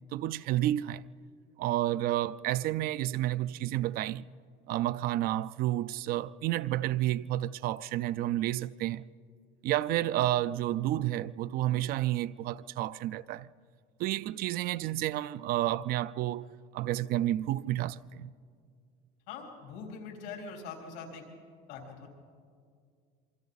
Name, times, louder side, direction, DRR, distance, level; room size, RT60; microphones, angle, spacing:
voice 1, 0.1-1.0 1.6-4.3 4.7-9.0 9.6-13.5 14.0-16.5 16.7-18.3, right 14 dB, 50° right, 0.4 m, -30 dB
voice 2, 19.3-21.2 21.7-22.1, left 5 dB, 85° left, 4.3 m, -43 dB
27.0 x 24.0 x 4.1 m
cardioid pair, 145°, 19 cm